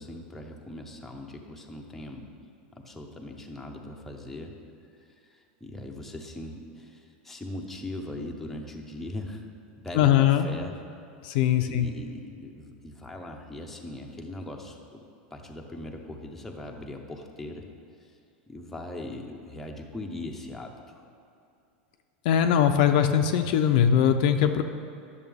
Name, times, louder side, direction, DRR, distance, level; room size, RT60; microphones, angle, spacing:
voice 1, 0.0-2.3 2.7-4.6 5.1-9.5 9.8-10.8 11.7-17.6 18.0-18.2 18.5-21.0, left 1 dB, 5° left, 1 dB, 0.7 m, -40 dB
voice 2, 9.9-10.5 11.2-11.8 22.2-24.6, left 9 dB, 60° left, 6 dB, 0.5 m, -21 dB
10.5 x 6.7 x 3.5 m, 2.6 s
supercardioid pair, 145°, 5 cm